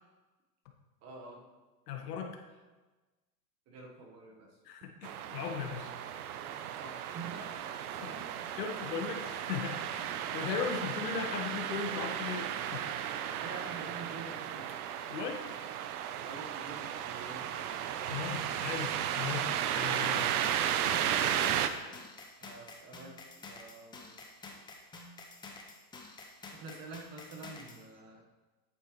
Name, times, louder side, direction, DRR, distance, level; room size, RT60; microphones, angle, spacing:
voice 1, 1.0-1.5 3.7-4.5 6.8-8.1 13.3-14.7 16.2-18.0 18.4-18.5 22.4-23.2 23.5-24.1 26.5-28.2, right 3 dB, 30° right, 1 dB, 1.4 m, -47 dB
voice 2, 1.9-2.4 4.6-5.9 8.0-12.9 15.1-15.5 18.1-20.4, left 6 dB, 75° left, 3 dB, 1.5 m, -38 dB
sound 1, 5.0-21.7, right 10 dB, 65° right, 0.8 m, -34 dB
percussion loop, 19.9-27.8, left 3 dB, 10° left, 0.7 m, -49 dB
9.8 x 8.7 x 3.1 m, 1.2 s
supercardioid pair, 140°, 48 cm